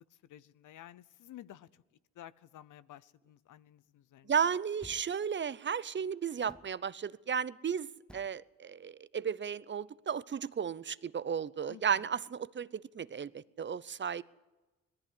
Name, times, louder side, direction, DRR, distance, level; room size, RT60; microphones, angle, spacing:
voice 1, 0.0-1.8 2.1-4.3 11.7-12.1, left 12 dB, 70° left, 17 dB, 0.8 m, -53 dB
voice 2, 4.2-14.2, right 7 dB, 35° right, 19 dB, 0.6 m, -34 dB
sound 1, 4.8-5.2 6.5-6.8 8.1-8.4, equal, 5° left, 0.7 m, -53 dB
18.5 x 14.0 x 9.8 m, 1.1 s
cardioid pair, 70°, 32 cm